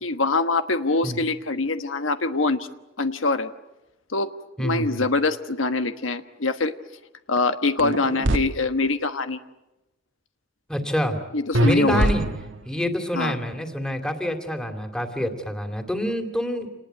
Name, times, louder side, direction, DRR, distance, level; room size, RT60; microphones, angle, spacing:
voice 1, 0.0-2.7 3.0-3.5 4.1-4.3 4.6-6.7 7.3-9.4 11.3-12.1 13.1-13.3, left 3 dB, 90° left, 9 dB, 1.3 m, -24 dB
voice 2, 4.6-5.0 10.7-11.2 11.6-12.3 12.6-16.7, equal, 5° left, 6 dB, 2.7 m, -27 dB
sound 1, 7.8-8.4 11.5-12.7, right 1 dB, 70° right, 1.4 m, -22 dB
27.5 x 20.0 x 9.1 m, 0.96 s
head